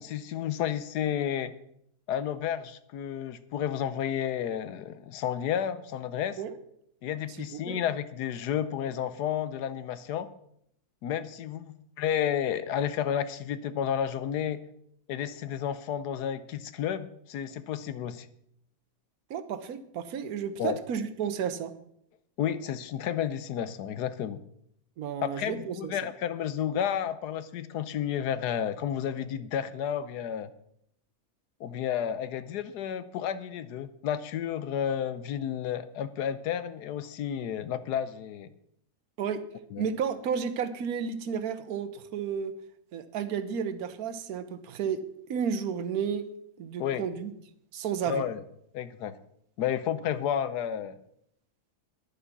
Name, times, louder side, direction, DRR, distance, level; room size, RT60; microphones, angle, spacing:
voice 1, 0.0-1.5 2.1-6.4 7.0-10.3 11.0-14.6 15.1-18.3 20.6-20.8 22.4-24.4 25.2-30.5 31.6-38.5 39.7-39.8 46.8-47.0 48.1-48.4 48.7-49.2 49.6-51.0, left 9 dB, 85° left, 14 dB, 1.3 m, -31 dB
voice 2, 7.3-7.8 19.3-21.7 25.0-25.9 39.2-39.4 39.8-42.6 42.9-45.0 45.3-46.3 46.6-47.3 47.7-48.2, right 7 dB, 70° right, 10 dB, 1.4 m, -32 dB
10.5 x 10.0 x 6.0 m, 0.73 s
omnidirectional pair, 1.7 m